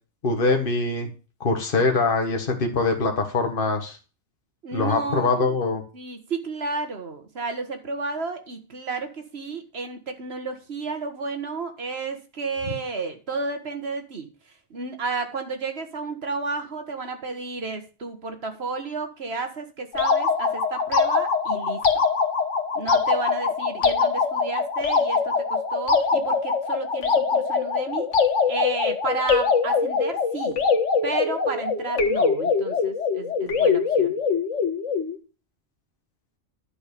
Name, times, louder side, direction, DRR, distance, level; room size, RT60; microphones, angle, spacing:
voice 1, 0.2-1.1 1.4-4.0 4.7-5.8, left 3 dB, 50° left, 3 dB, 1.7 m, -23 dB
voice 2, 4.6-5.6 5.9-14.3 14.7-22.0 22.8-28.1 28.5-30.6 31.0-34.1, right 4 dB, 60° right, 7 dB, 1.8 m, -32 dB
sound 1, 19.9-35.2, left 5 dB, 85° left, 1.6 m, -23 dB
11.0 x 5.1 x 6.8 m, 0.34 s
omnidirectional pair, 1.2 m